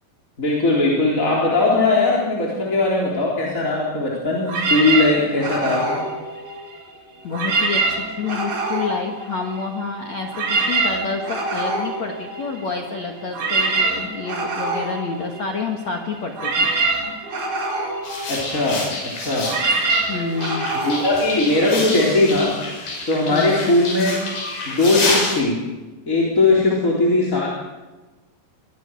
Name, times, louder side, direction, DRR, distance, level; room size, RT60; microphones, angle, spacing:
voice 1, 0.4-6.0 18.3-19.5 20.8-22.6 23.1-24.1 24.7-25.6 26.1-27.5, left 2 dB, 20° left, -4 dB, 3.5 m, -19 dB
sound 1, 4.5-6.9 7.2-9.8 10.1-22.0, right 3 dB, 85° right, 9.2 m, -25 dB
voice 2, 7.2-16.7 20.0-20.7 23.3-23.7 26.7-26.8, left 4 dB, 65° left, 2 dB, 1.8 m, -28 dB
sound 2, 18.0-25.4, left 2 dB, 50° left, 8.1 m, -28 dB
24.0 x 22.5 x 6.3 m, 1.2 s
omnidirectional pair, 6.0 m